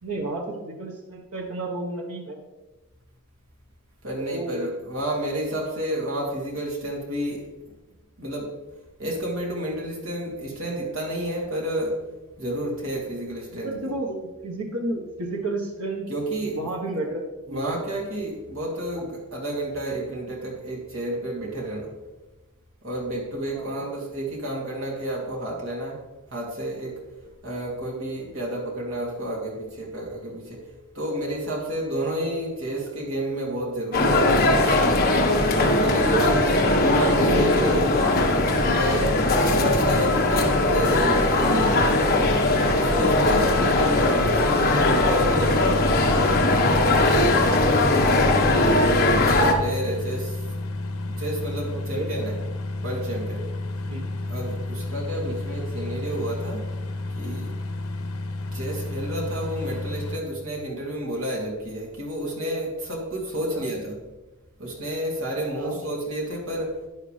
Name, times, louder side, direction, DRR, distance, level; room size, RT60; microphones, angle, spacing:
voice 1, 0.0-2.4 4.3-4.6 13.5-16.0 16.4-17.2 17.5-17.8 18.9-19.1 23.5-23.8 36.0-36.4 36.8-37.5 51.7-52.1 53.9-54.2 54.8-55.1 63.5-63.7 65.5-65.8, right 2 dB, 85° right, 0 dB, 1.4 m, -32 dB
voice 2, 4.0-7.4 8.2-8.6 9.0-12.0 12.4-13.7 16.1-16.6 17.5-22.0 22.8-26.0 26.3-27.0 27.4-30.6 30.9-34.5 35.5-37.9 38.7-41.7 42.8-45.9 49.2-50.4 51.0-52.3 52.8-53.4 54.3-56.7 57.1-57.6 58.5-63.9 64.6-66.8, right 1 dB, 65° right, -3 dB, 3.1 m, -30 dB
sound 1, 33.9-49.5, left 2 dB, 45° left, 1.5 m, -20 dB
sound 2, 45.2-60.2, left 2 dB, 70° left, 1.2 m, -31 dB
12.0 x 10.0 x 3.4 m, 1.1 s
head